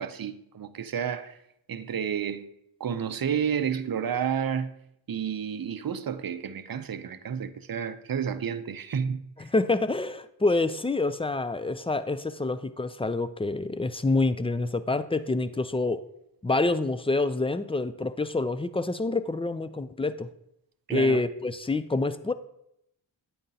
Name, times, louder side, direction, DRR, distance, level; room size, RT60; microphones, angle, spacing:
voice 1, 0.0-1.4 1.7-2.5 2.8-4.8 5.1-9.5 20.9-21.2, right 7 dB, 50° right, 0.5 m, -31 dB
voice 2, 9.4-16.0 16.4-20.3 20.9-22.3, left 2 dB, 15° left, 0.3 m, -27 dB
9.0 x 8.8 x 2.8 m
wide cardioid pair, 50°, 48 cm